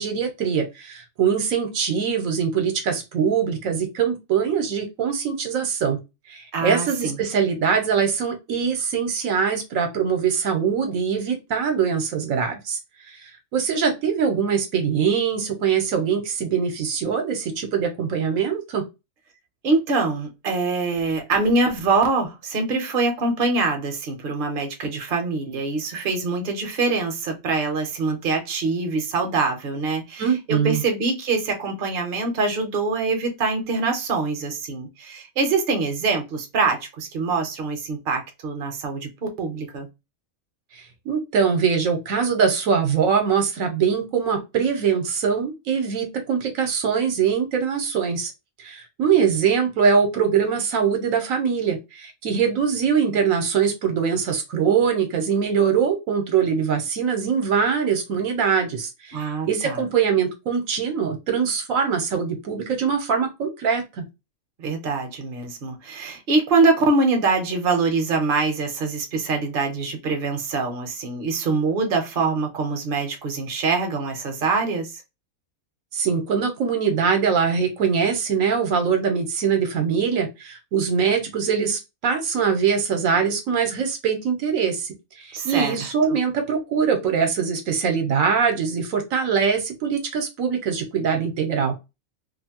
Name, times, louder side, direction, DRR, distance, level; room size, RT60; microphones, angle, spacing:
voice 1, 0.0-6.0 6.3-12.8 13.1-18.9 30.2-30.8 40.7-48.3 48.6-64.0 75.9-91.7, right 6 dB, 75° right, 1.1 m, -23 dB
voice 2, 6.5-7.2 19.6-39.9 59.1-59.8 64.6-74.9 85.3-85.7 86.1-86.2, right 3 dB, 50° right, 0.8 m, -24 dB
2.6 x 2.5 x 2.8 m
omnidirectional pair, 1.5 m